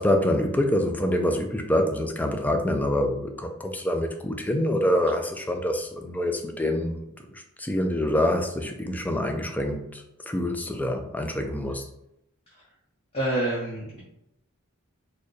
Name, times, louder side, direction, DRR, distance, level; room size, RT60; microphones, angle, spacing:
voice 1, 0.0-11.9, left 1 dB, 10° left, 5 dB, 0.3 m, -26 dB
voice 2, 13.1-14.0, right 1 dB, 30° left, -6 dB, 0.8 m, -28 dB
4.3 x 2.2 x 3.1 m, 0.82 s
head